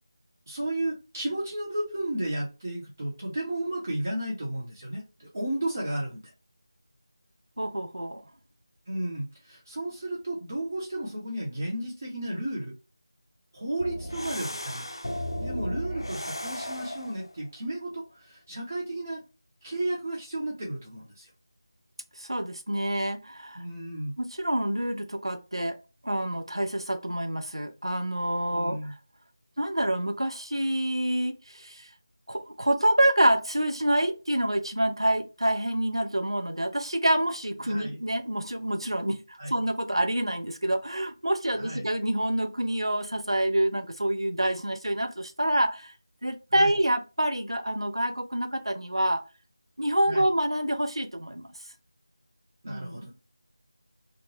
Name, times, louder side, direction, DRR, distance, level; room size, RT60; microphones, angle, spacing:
voice 1, 0.5-6.2 8.9-12.7 13.5-14.9 15.4-19.2 19.6-21.3 23.5-24.1 28.5-28.9 37.6-38.0 39.4-39.6 41.5-41.8 46.5-46.7 50.1-50.2 52.6-53.1, right 1 dB, 35° right, 0.9 m, -33 dB
voice 2, 7.6-8.2 22.2-23.6 24.2-25.8 26.0-29.0 29.6-31.9 32.3-45.9 46.2-49.2 49.8-51.5 52.7-53.1, right 1 dB, 80° right, 0.6 m, -27 dB
sound 1, 13.8-17.3, equal, 75° left, 0.5 m, -35 dB
2.9 x 2.2 x 3.0 m
figure-of-eight pair, 165°, 3 cm